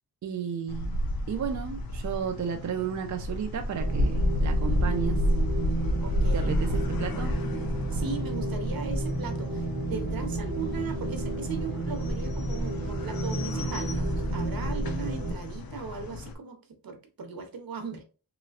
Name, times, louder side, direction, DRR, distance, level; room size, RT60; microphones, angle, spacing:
voice 1, 0.2-1.0 1.3-5.2 6.3-7.3, right 7 dB, 55° right, 0.4 m, -33 dB
sound 1, 0.7-16.3, left 1 dB, 85° left, 0.6 m, -31 dB
sound 2, 3.7-15.3, right 2 dB, 40° right, 1.2 m, -32 dB
voice 2, 6.0-6.6 7.9-16.6 16.8-18.0, right 4 dB, 85° right, 0.8 m, -38 dB
3.1 x 3.0 x 2.4 m
wide cardioid pair, 100°, 34 cm